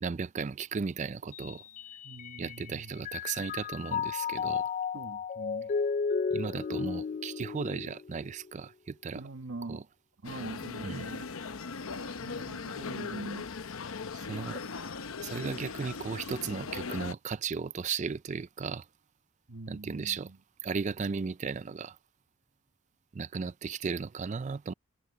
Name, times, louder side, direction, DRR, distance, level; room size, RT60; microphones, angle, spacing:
voice 1, 0.0-1.6 2.4-4.7 6.3-9.2 9.7-9.8 10.8-11.1 14.1-14.6 15.2-18.9 19.7-20.3 20.6-22.0 23.1-24.7, right 5 dB, 35° right, 0.4 m, -35 dB
Mallet percussion, 1.3-2.7 3.0-8.5, left 5 dB, 40° left, 0.3 m, -34 dB
voice 2, 2.0-3.1 4.9-5.7 9.1-9.9 10.2-11.3 12.2-13.5 19.5-20.4, right 2 dB, 75° right, 1.2 m, -43 dB
sound 1, 10.2-17.1, left 4 dB, 90° left, 0.9 m, -39 dB
head